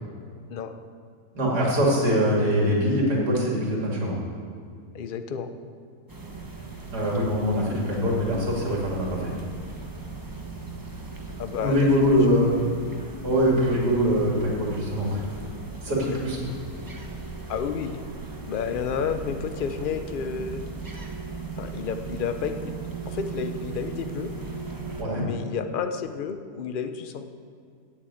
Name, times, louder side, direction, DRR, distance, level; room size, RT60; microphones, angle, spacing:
voice 1, 1.3-4.2 6.9-9.3 11.6-12.6 13.2-15.2 15.8-16.4 25.0-25.2, equal, 80° right, -4 dB, 3.2 m, -23 dB
voice 2, 4.9-5.5 11.4-11.8 12.1-12.2 16.0-16.2 17.5-18.0 18.5-20.6 21.6-22.8 23.1-24.3 25.1-27.3, left 6 dB, 55° left, 9 dB, 0.5 m, -31 dB
sound 1, 6.1-25.0, right 4 dB, 15° right, 0.8 m, -38 dB
8.8 x 8.1 x 8.4 m, 2.3 s
omnidirectional pair, 1.7 m